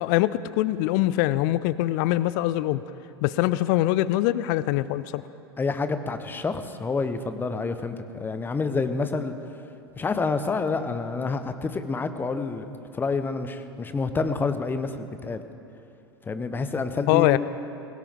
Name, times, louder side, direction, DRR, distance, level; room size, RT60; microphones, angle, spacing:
voice 1, 0.0-2.8 3.2-5.2 17.1-17.4, left 16 dB, 45° left, 17 dB, 0.5 m, -23 dB
voice 2, 5.6-7.9 8.2-9.3 10.0-15.5 16.2-17.4, left 4 dB, 15° left, 10 dB, 0.9 m, -28 dB
21.5 x 17.0 x 3.5 m, 2.8 s
figure-of-eight pair, 85°, 13 cm